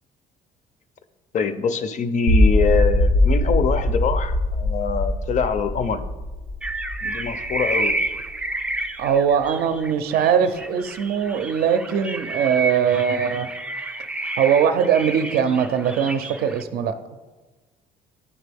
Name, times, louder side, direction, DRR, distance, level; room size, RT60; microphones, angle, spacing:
voice 1, 1.3-6.1 7.0-8.0, left 6 dB, 45° left, 11 dB, 0.5 m, -24 dB
sound 1, 2.3-8.3, left 1 dB, 80° left, 1.3 m, -21 dB
sound 2, 6.6-16.6, right 2 dB, 5° right, 0.3 m, -30 dB
voice 2, 9.0-13.5 14.4-16.9, right 7 dB, 65° right, 9 dB, 0.5 m, -21 dB
10.0 x 4.1 x 3.5 m, 1.2 s
cardioid pair, 110°, 17 cm